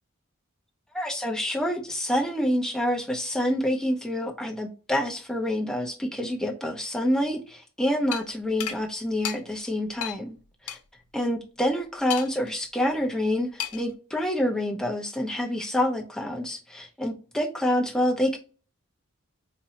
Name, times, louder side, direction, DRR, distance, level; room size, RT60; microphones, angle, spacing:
voice 1, 0.9-10.4 10.6-10.8 11.1-18.4, left 1 dB, 5° left, 0.6 m, -27 dB
sound 1, 8.1-8.2 8.6-8.8 9.2-9.4 10.0-10.2 10.7-10.8 12.1-12.5 13.6-13.9, left 11 dB, 90° left, 0.5 m, -32 dB
4.2 x 2.6 x 2.8 m
head